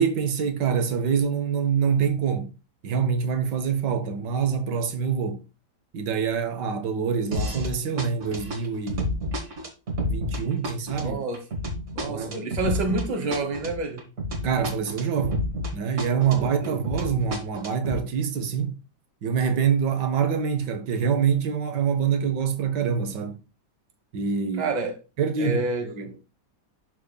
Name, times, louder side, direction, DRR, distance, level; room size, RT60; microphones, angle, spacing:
voice 1, 0.0-2.5 2.8-5.4 5.9-9.1 10.1-11.2 12.0-12.4 14.4-15.4 15.7-18.8 19.2-23.3 24.1-24.7 25.2-26.1, right 6 dB, 80° right, 1.5 m, -25 dB
sound 1, 7.3-7.7 8.0-15.7 16.0-18.0, left 1 dB, 45° right, 1.6 m, -30 dB
voice 2, 11.0-11.4 11.9-14.0 16.3-16.8 24.6-25.0 25.4-25.9, right 3 dB, 25° right, 1.2 m, -28 dB
11.5 x 4.2 x 2.3 m
omnidirectional pair, 1.9 m